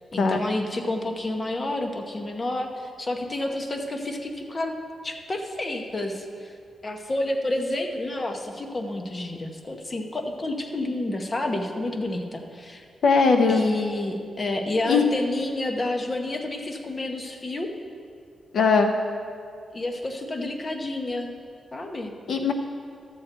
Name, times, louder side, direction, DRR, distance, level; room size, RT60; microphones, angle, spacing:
voice 1, 0.1-4.8 5.0-6.5 6.8-12.8 13.5-17.7 19.7-21.3 21.7-22.1, left 2 dB, 25° left, 4 dB, 0.8 m, -29 dB
voice 2, 13.0-13.6 14.9-15.0 18.5-18.9 22.3-22.5, left 4 dB, 65° left, 5 dB, 0.6 m, -19 dB
13.0 x 4.4 x 7.8 m, 2.3 s
wide cardioid pair, 155°, 0 cm